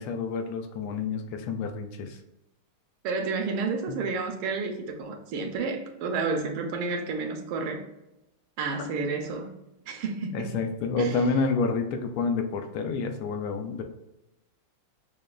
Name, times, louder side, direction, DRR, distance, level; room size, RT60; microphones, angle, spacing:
voice 1, 0.0-2.2 8.8-8.9 10.3-13.8, left 4 dB, 85° left, 5 dB, 1.5 m, -29 dB
voice 2, 3.0-7.8 8.6-9.5 9.9-10.6 11.0-11.2, right 4 dB, 75° right, 3 dB, 1.4 m, -30 dB
6.4 x 2.2 x 2.3 m, 0.93 s
omnidirectional pair, 2.4 m